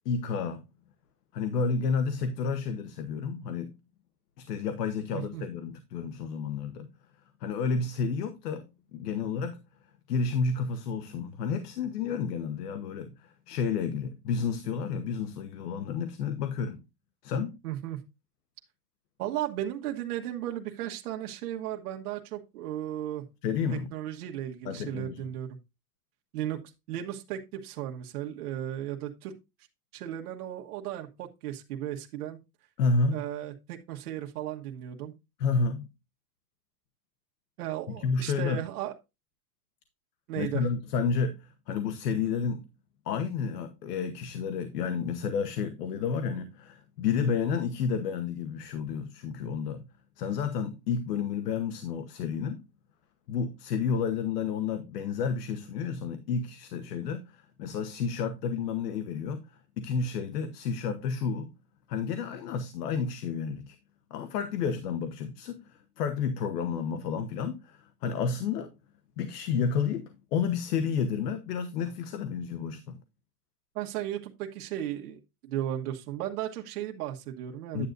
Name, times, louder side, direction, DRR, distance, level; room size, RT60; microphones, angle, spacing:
voice 1, 0.0-0.6 1.3-3.7 4.4-6.9 7.4-9.6 10.1-16.8 17.2-17.6 23.4-23.9 24.6-25.2 32.8-33.2 35.4-35.9 37.9-38.6 40.4-42.7 43.0-49.9 50.2-52.6 53.3-61.5 61.9-63.7 64.1-68.7 69.2-73.0 77.7-77.9, left 5 dB, 90° left, 1.2 m, -31 dB
voice 2, 5.1-5.4 17.6-18.0 19.2-23.2 23.9-25.6 26.3-26.6 26.9-29.3 29.9-32.4 33.1-35.1 37.6-38.9 40.3-40.7 73.7-77.9, right 12 dB, 75° right, 1.5 m, -35 dB
10.0 x 8.0 x 2.6 m
supercardioid pair, 150°, 46 cm